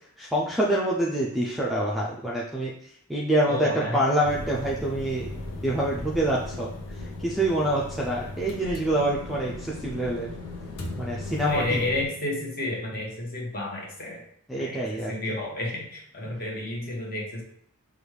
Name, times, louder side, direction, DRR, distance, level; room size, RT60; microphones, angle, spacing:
voice 1, 0.2-2.7 3.1-5.3 5.6-6.7 7.2-10.3 11.0-11.8 14.5-15.1, right 1 dB, ahead, -5 dB, 0.3 m, -26 dB
voice 2, 3.4-4.0 11.4-14.2 14.6-17.4, left 2 dB, 40° left, -1 dB, 1.0 m, -31 dB
sound 1, 4.2-12.1, left 2 dB, 85° left, 0.7 m, -37 dB
4.9 x 2.3 x 3.1 m, 0.66 s
head